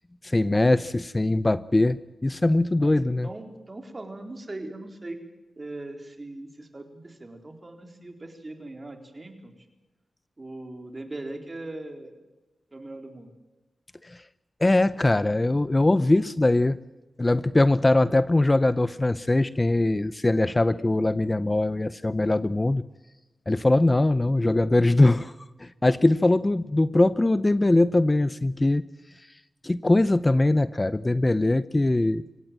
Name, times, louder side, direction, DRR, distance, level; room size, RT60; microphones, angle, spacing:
voice 1, 0.2-3.3 14.0-14.2 14.6-16.8 17.2-22.8 23.5-25.3 25.6-28.8 29.6-32.2, left 2 dB, 25° left, 15 dB, 0.7 m, -21 dB
voice 2, 2.8-5.2 5.6-9.5 10.4-12.1 12.7-13.3, right 2 dB, 35° right, 5 dB, 4.1 m, -40 dB
25.0 x 18.0 x 7.6 m, 1.1 s
wide cardioid pair, 75°, 0 cm